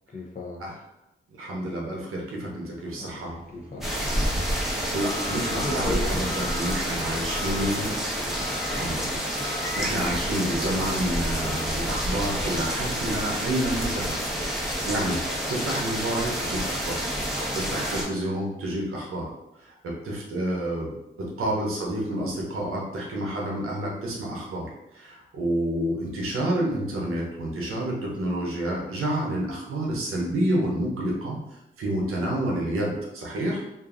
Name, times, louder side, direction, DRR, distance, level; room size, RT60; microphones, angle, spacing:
voice 1, 0.1-0.8 2.9-3.9 7.8-9.1 18.0-18.2 21.4-21.6, left 3 dB, 40° left, 1 dB, 0.6 m, -42 dB
voice 2, 1.4-3.3 4.6-7.9 8.7-9.2 9.5-15.2 15.5-17.0 17.5-19.3 19.6-24.7 24.9-33.6, right 1 dB, 85° right, -2 dB, 0.7 m, -29 dB
sound 1, 3.0-11.6, left 3 dB, 30° right, 0.4 m, -43 dB
sound 2, 3.8-18.0, equal, ahead, 0.9 m, -28 dB
2.6 x 2.4 x 2.4 m, 0.89 s
supercardioid pair, 40°, 21 cm